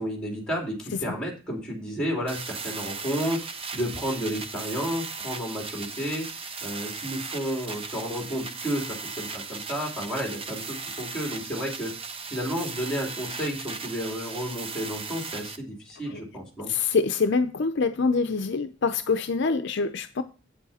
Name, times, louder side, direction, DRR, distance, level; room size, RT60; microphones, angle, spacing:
voice 1, 0.0-3.5 3.7-6.3 6.6-11.9 12.3-16.7, equal, 5° left, 3.0 m, -31 dB
sound 1, 2.3-15.6, right 4 dB, 25° right, 0.7 m, -37 dB
voice 2, 16.7-20.2, left 4 dB, 60° left, 0.5 m, -25 dB
8.6 x 7.3 x 4.1 m
head